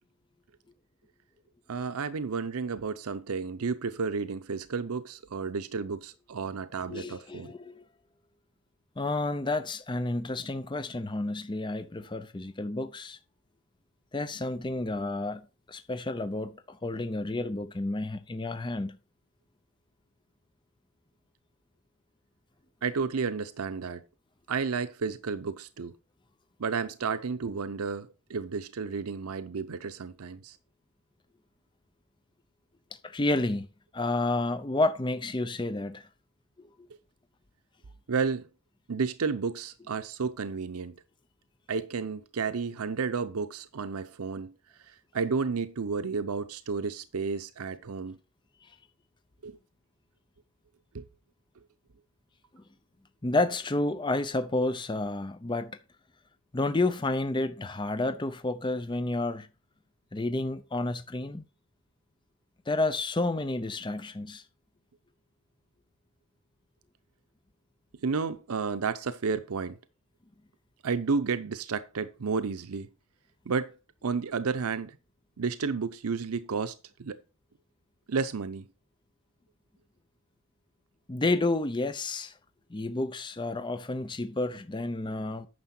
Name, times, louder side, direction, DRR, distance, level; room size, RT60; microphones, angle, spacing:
voice 1, 1.7-7.5 22.8-24.0 24.5-26.0 26.6-30.6 38.1-38.4 38.9-41.0 41.7-44.5 44.9-48.2 49.4-49.6 50.9-51.1 68.0-69.8 70.8-72.9 73.5-73.7 74.0-75.0 75.4-77.2 78.1-78.7, right 5 dB, 85° right, 0.6 m, -32 dB
voice 2, 6.9-7.8 9.0-13.2 14.1-15.4 15.7-19.0 33.0-33.7 33.9-36.0 53.2-55.7 56.5-59.5 60.1-61.4 62.7-64.4 81.1-82.3 82.7-85.5, left 2 dB, 20° left, 0.5 m, -30 dB
9.5 x 6.6 x 4.3 m
head